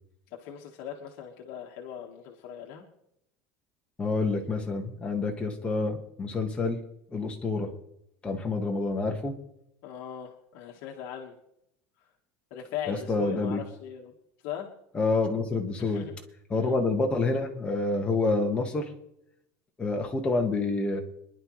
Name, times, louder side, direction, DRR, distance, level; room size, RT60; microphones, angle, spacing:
voice 1, 0.3-2.9 9.8-11.3 12.0-12.1 12.5-14.1 14.4-14.7 15.8-16.2 16.5-16.7, left 9 dB, 55° left, 0 dB, 1.5 m, -39 dB
voice 2, 4.0-6.8 7.1-7.7 8.2-9.3 12.9-13.6 14.9-16.1 16.5-18.9 19.8-21.0, left 3 dB, 15° left, 1 dB, 1.4 m, -28 dB
26.0 x 11.0 x 3.2 m, 0.81 s
cardioid pair, 170°, 9 cm